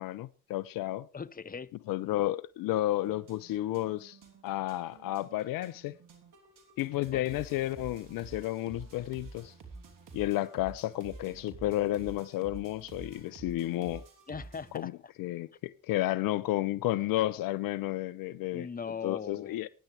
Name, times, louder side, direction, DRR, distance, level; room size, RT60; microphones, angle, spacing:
voice 1, 0.0-1.1 1.9-4.2 4.4-6.0 6.8-9.5 10.1-14.0 14.7-14.9 15.2-18.7 19.0-19.7, left 15 dB, 70° left, 0.6 m, -32 dB
voice 2, 1.1-1.7 7.1-7.2 14.3-14.9 18.5-19.7, left 6 dB, 25° left, 0.8 m, -39 dB
sound 1, 3.0-14.8, right 4 dB, 65° right, 3.1 m, -50 dB
16.0 x 10.0 x 3.3 m
hypercardioid pair, 45°, 35 cm